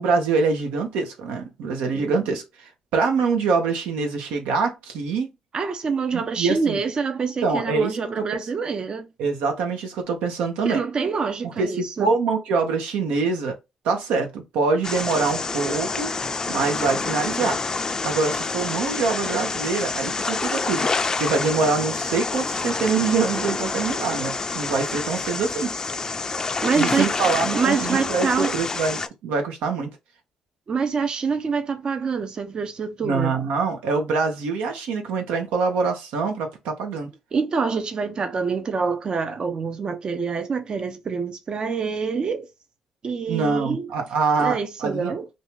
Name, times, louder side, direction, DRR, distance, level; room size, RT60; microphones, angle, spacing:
voice 1, 0.0-5.3 6.1-6.8 7.2-8.4 9.2-10.8 11.6-13.5 13.8-16.1 16.5-17.6 18.0-20.9 21.2-25.8 26.7-29.9 33.0-37.1 43.3-45.1, right 4 dB, 90° right, 0.8 m, -24 dB
voice 2, 1.9-2.3 5.5-9.1 10.6-12.1 26.6-27.1 27.5-28.5 30.7-33.3 37.3-42.5 43.0-43.9 44.4-45.3, right 5 dB, 45° right, 0.5 m, -26 dB
sound 1, 14.8-29.1, left 4 dB, 30° left, 0.4 m, -27 dB
2.6 x 2.3 x 3.0 m
cardioid pair, 75°, 2 cm